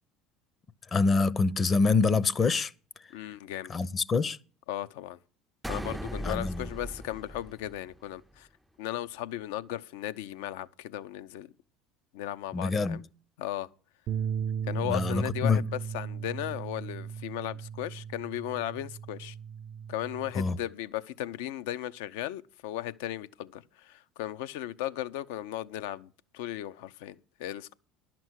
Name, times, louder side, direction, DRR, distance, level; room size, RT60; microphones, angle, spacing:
voice 1, 0.9-2.7 3.7-4.4 6.2-6.7 12.5-13.0 14.8-15.6 20.4-20.6, left 4 dB, 30° left, 0.7 m, -26 dB
voice 2, 3.1-3.7 4.7-5.2 5.7-8.5 8.8-11.5 12.1-13.0 13.4-13.7 14.7-19.4 19.9-27.7, left 13 dB, 75° left, 0.6 m, -36 dB
sound 1, 5.6-8.2, equal, 5° right, 0.4 m, -38 dB
sound 2, 14.1-20.3, right 8 dB, 55° right, 0.5 m, -36 dB
11.0 x 6.1 x 7.9 m
hypercardioid pair, 80°, 0 cm